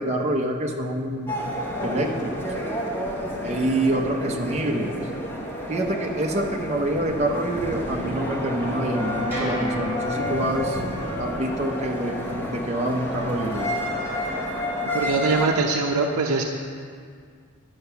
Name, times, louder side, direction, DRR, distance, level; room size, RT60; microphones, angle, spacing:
voice 1, 0.0-1.4 1.8-2.3 3.4-5.0 5.7-10.8 11.2-13.8, right 1 dB, 30° right, 1 dB, 0.7 m, -26 dB
sound 1, 1.3-15.5, equal, 10° left, 1.2 m, -30 dB
sound 2, 7.2-12.8, left 1 dB, 10° right, 2.7 m, -35 dB
voice 2, 14.9-16.4, right 4 dB, 85° right, 0 dB, 0.6 m, -22 dB
9.9 x 5.6 x 6.8 m, 2.1 s
head